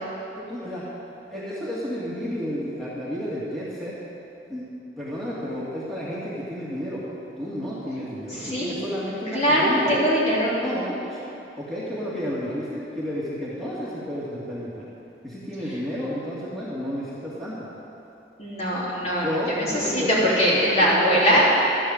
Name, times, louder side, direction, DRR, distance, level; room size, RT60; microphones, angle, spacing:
voice 1, 0.3-0.8 1.3-3.9 4.5-4.6 5.0-7.0 7.4-10.0 10.6-11.2 11.6-14.9 15.2-17.7 19.2-21.4, equal, ahead, -9 dB, 2.2 m, -31 dB
voice 2, 8.3-8.7 9.3-10.6 18.4-19.3 19.6-21.5, equal, 35° left, -7 dB, 2.9 m, -21 dB
12.5 x 9.2 x 7.3 m, 2.8 s
head